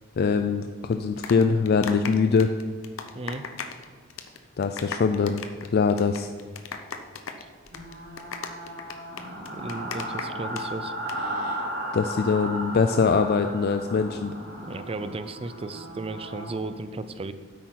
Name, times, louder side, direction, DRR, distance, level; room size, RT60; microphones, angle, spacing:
voice 1, 0.2-2.5 4.6-5.4 5.7-6.3 11.9-14.3, left 5 dB, 50° left, 7 dB, 0.4 m, -23 dB
sound 1, 0.9-3.8 4.1-4.4 4.6-10.6 10.9-11.2, left 5 dB, 75° left, 0.8 m, -36 dB
sound 2, 7.7-16.6, right 1 dB, 85° right, 3.2 m, -35 dB
voice 2, 9.4-10.9 14.6-17.3, right 2 dB, 30° right, 11 dB, 0.5 m, -35 dB
9.8 x 8.3 x 4.6 m, 1.5 s
head